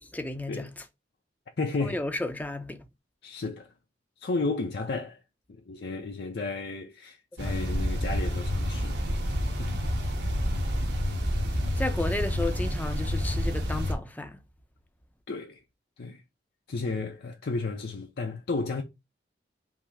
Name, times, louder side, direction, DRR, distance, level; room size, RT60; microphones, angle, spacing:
voice 1, 0.1-0.7 1.8-2.8 11.8-14.4, left 2 dB, 10° left, 0.5 m, -33 dB
voice 2, 1.6-2.0 3.2-3.7 4.2-5.2 5.5-9.9 15.3-15.6 16.0-16.2 16.7-18.8, left 3 dB, 65° left, 0.6 m, -33 dB
sound 1, 7.4-13.9, equal, 75° right, 1.3 m, -28 dB
5.6 x 2.0 x 4.6 m
head